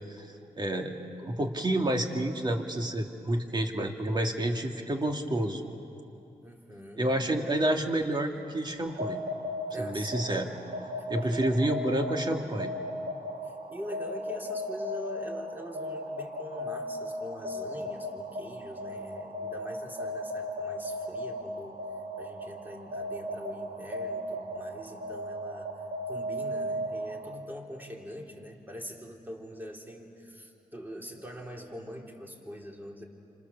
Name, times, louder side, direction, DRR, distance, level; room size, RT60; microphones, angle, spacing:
voice 1, 0.6-5.6 7.0-9.2 9.8-10.5 11.1-12.7, right 1 dB, 30° right, 3 dB, 2.5 m, -29 dB
voice 2, 6.4-7.1 9.7-10.4 11.2-11.5 13.4-21.8 22.2-25.8 26.1-33.0, equal, 15° right, 0 dB, 3.9 m, -43 dB
sound 1, 8.9-27.3, equal, 65° right, 2.9 m, -36 dB
29.5 x 26.5 x 7.2 m, 2.7 s
cardioid pair, 80°, 15 cm